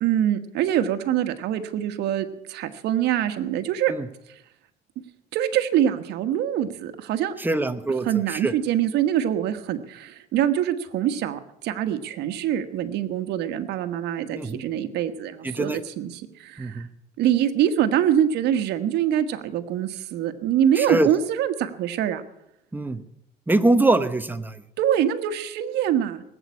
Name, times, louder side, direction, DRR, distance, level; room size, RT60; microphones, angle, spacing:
voice 1, 0.0-3.9 5.3-7.3 8.0-16.9 17.2-22.2 24.8-26.2, right 10 dB, 80° right, 9 dB, 1.4 m, -24 dB
voice 2, 7.4-8.5 14.3-14.6 15.4-15.8 16.6-16.9 20.8-21.1 22.7-23.0 23.5-24.6, right 2 dB, 10° right, 10 dB, 1.0 m, -23 dB
19.0 x 8.2 x 8.4 m, 0.81 s
cardioid pair, 110°, 17 cm